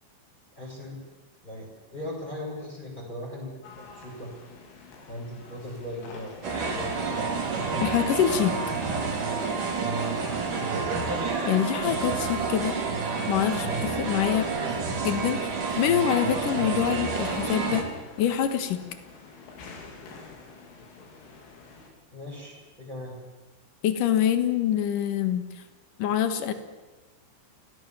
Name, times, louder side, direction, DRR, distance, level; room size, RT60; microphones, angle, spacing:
voice 1, 0.6-1.0 1.4-3.5 3.8-4.3 5.1-7.4 10.6-11.0 22.1-23.1, left 1 dB, 10° left, -4 dB, 7.1 m, -39 dB
sound 1, 3.6-21.9, left 4 dB, 90° left, 6.2 m, -48 dB
sound 2, 6.4-17.8, right 4 dB, 45° right, 4.7 m, -29 dB
voice 2, 7.8-8.6 11.5-12.8 13.3-14.5 15.0-17.8 18.2-18.8 23.8-25.4 26.0-26.5, left 10 dB, 60° left, 9 dB, 2.4 m, -25 dB
28.5 x 18.5 x 7.5 m, 1.2 s
omnidirectional pair, 5.5 m